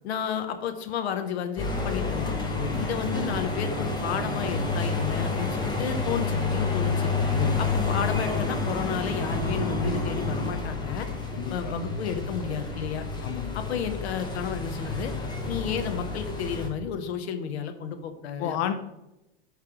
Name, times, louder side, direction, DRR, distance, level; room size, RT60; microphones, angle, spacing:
voice 1, 0.0-2.3 2.8-7.1 7.6-11.1 11.5-13.1 13.5-15.1 15.5-18.7, left 7 dB, 85° left, 8 dB, 1.0 m, -32 dB
sound 1, 1.6-16.7, left 3 dB, 15° left, 1.4 m, -29 dB
voice 2, 2.6-3.0 7.4-7.8 11.3-11.7 13.2-13.7 18.4-18.7, left 10 dB, 50° left, 8 dB, 0.6 m, -32 dB
9.1 x 3.4 x 4.9 m, 0.91 s
hypercardioid pair, 115°, 31 cm